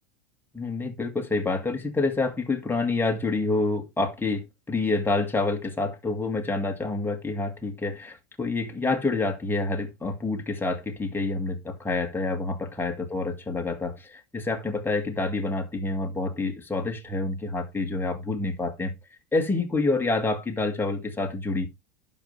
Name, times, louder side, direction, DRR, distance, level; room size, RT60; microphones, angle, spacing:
voice 1, 0.5-18.9 19.3-21.7, left 3 dB, 5° left, 1.7 m, -27 dB
11.5 x 5.5 x 3.2 m
supercardioid pair, 135°, 34 cm